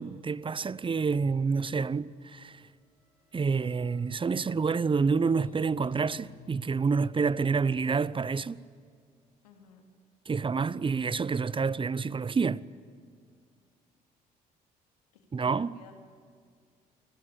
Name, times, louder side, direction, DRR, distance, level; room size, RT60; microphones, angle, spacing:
voice 1, 0.0-2.6 3.3-8.6 10.3-12.6 15.3-15.7, right 5 dB, 25° right, 0.7 m, -28 dB
sound 1, 2.7-6.6, left 7 dB, 45° left, 6.5 m, -55 dB
voice 2, 9.4-9.9 15.1-15.9, left 6 dB, 85° left, 2.8 m, -54 dB
28.5 x 20.5 x 8.9 m
hypercardioid pair, 50°, 20 cm